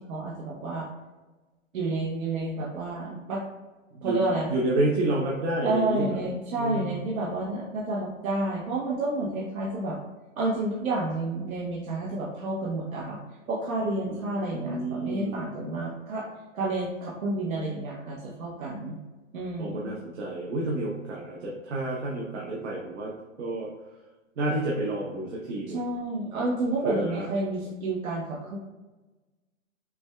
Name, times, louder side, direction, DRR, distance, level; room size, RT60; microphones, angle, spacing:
voice 1, 0.1-0.8 1.7-3.4 4.0-4.5 5.6-10.0 10.4-13.2 13.5-16.2 16.5-19.0 19.3-19.9 25.7-28.6, right 2 dB, 90° right, -4 dB, 1.0 m, -30 dB
voice 2, 4.5-6.2 6.6-6.9 14.1-15.5 19.6-23.1 23.4-23.7 24.4-25.8 26.8-27.3, right 2 dB, 60° right, -3 dB, 0.8 m, -29 dB
6.0 x 2.3 x 2.2 m, 1.2 s
hypercardioid pair, 165°, 40 cm